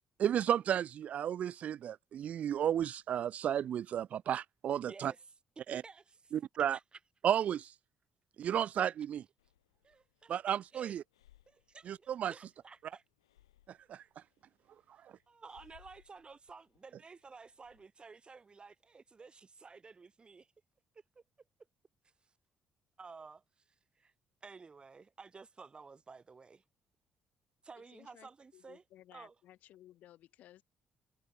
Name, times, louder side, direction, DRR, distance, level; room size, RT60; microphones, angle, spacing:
voice 1, 0.2-5.1 5.7-5.8 6.6-6.8 7.2-7.7 8.4-9.2 10.3-11.0 11.9-12.3 13.9-14.0, right 10 dB, 55° right, 0.5 m, -33 dB
voice 2, 4.9-5.3 5.7-6.0 6.7-7.0 9.8-10.4 10.7-11.0 11.5-13.0 15.3-20.5 21.1-21.2 23.0-24.1 24.4-26.6 27.6-28.8 29.1-29.3, right 4 dB, 35° right, 5.0 m, -53 dB
Breathing, 9.4-17.9, left 13 dB, 85° left, 5.5 m, -68 dB
voice 3, 27.9-30.6, left 13 dB, 65° left, 4.4 m, -58 dB
hypercardioid pair, 45°, 3 cm